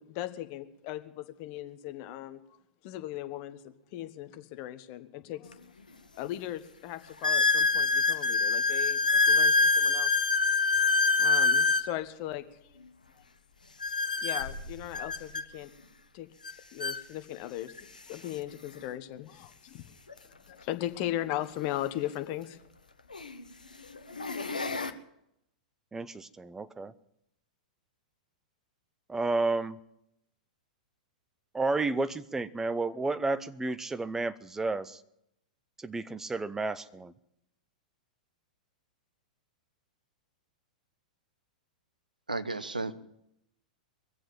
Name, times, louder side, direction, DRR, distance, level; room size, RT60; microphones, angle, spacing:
voice 1, 0.0-2.4 2.8-5.6 6.2-9.0 9.3-10.1 11.2-12.8 14.2-15.7 16.1-16.3 16.7-19.8 20.5-22.6, left 13 dB, 45° left, 10 dB, 1.2 m, -38 dB
sound 1, 5.5-5.6 6.3-6.4 7.2-11.9 13.8-15.4 16.4-16.5 16.8-17.0 17.8-17.9 20.1-20.2 22.3-22.4 23.1-23.4 24.0-24.9, left 3 dB, 85° left, 1.0 m, -25 dB
voice 2, 25.9-26.9 29.1-29.8 31.5-35.0 35.8-37.1, right 3 dB, 10° right, 14 dB, 0.7 m, -31 dB
voice 3, 42.3-42.9, right 3 dB, 90° right, 12 dB, 0.8 m, -33 dB
22.5 x 7.7 x 7.5 m, 0.80 s
figure-of-eight pair, 100°, 4 cm